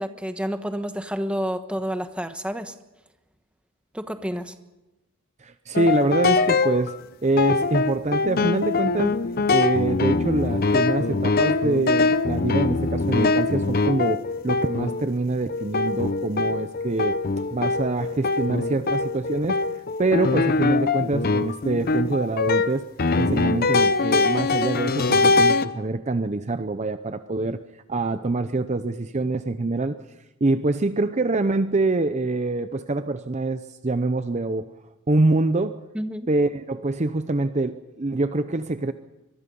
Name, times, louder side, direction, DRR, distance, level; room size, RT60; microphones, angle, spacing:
voice 1, 0.0-2.7 3.9-4.5 35.9-36.3, equal, 5° right, 8 dB, 1.1 m, -29 dB
voice 2, 5.4-6.9 7.2-9.2 9.5-17.2 17.5-22.9 23.2-27.6 27.9-30.0 30.4-34.7 35.1-35.8 36.3-38.9, right 2 dB, 30° right, 10 dB, 0.6 m, -25 dB
sound 1, 5.8-7.0 7.4-15.1 15.5-25.7, left 3 dB, 45° left, 0.7 m, -23 dB
24.0 x 22.0 x 5.4 m, 1.0 s
head